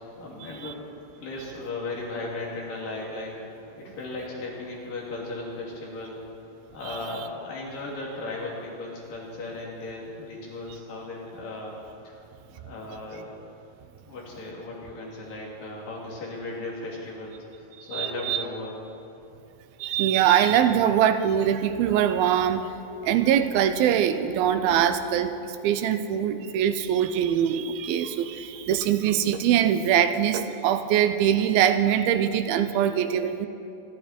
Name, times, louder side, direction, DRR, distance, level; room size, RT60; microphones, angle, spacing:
voice 1, 0.2-0.8 1.2-3.3 3.8-6.2 6.7-11.8 12.0-12.2 12.5-13.3 14.0-18.7, left 2 dB, 70° left, -4 dB, 4.6 m, -36 dB
voice 2, 17.9-18.4 19.8-22.7 23.0-33.5, right 9 dB, 90° right, 10 dB, 2.6 m, -23 dB
27.0 x 11.5 x 4.4 m, 2.8 s
omnidirectional pair, 4.2 m